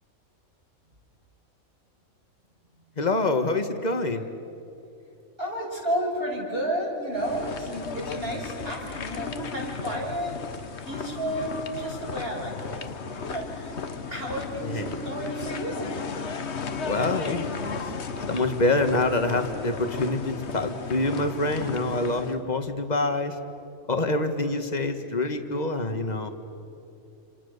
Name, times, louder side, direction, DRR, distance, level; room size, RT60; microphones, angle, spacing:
voice 1, 3.0-4.3 14.6-15.0 16.8-17.8 18.3-23.4 23.9-26.3, left 2 dB, 30° left, 7 dB, 1.8 m, -26 dB
voice 2, 5.4-10.4 10.8-12.8 13.1-13.8 14.1-15.9, equal, 40° right, -1 dB, 6.7 m, -31 dB
sound 1, 7.2-22.4, left 5 dB, 50° left, 1.4 m, -35 dB
29.0 x 27.5 x 6.8 m, 2.7 s
omnidirectional pair, 1.5 m